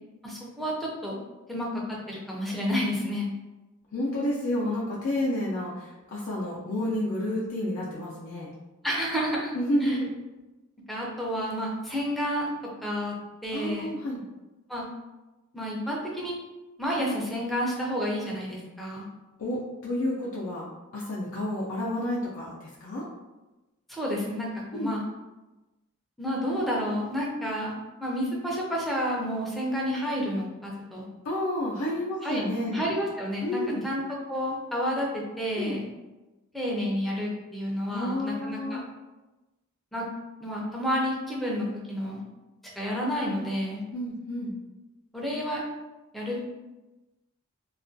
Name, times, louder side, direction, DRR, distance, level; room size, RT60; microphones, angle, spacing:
voice 1, 0.2-1.2 1.5-3.3 8.8-9.5 9.8-10.0 10.9-12.5 12.8-13.1 13.4-13.9 14.7-14.8 15.5-16.3 16.8-19.0 23.9-25.0 26.2-27.8 28.0-31.0 32.2-32.4 32.7-34.0 34.3-35.9 36.5-38.8 39.9-40.1 40.4-42.2 42.8-43.8 45.1-45.6 46.1-46.4, equal, ahead, -4 dB, 0.4 m, -30 dB
voice 2, 3.9-8.5 9.5-10.1 13.5-14.2 19.4-20.6 20.9-23.1 24.7-24.9 31.2-32.8 33.4-33.9 35.6-35.8 37.9-38.8 43.9-44.5, left 1 dB, 75° left, -5 dB, 0.4 m, -30 dB
2.3 x 2.1 x 2.5 m, 1.1 s
head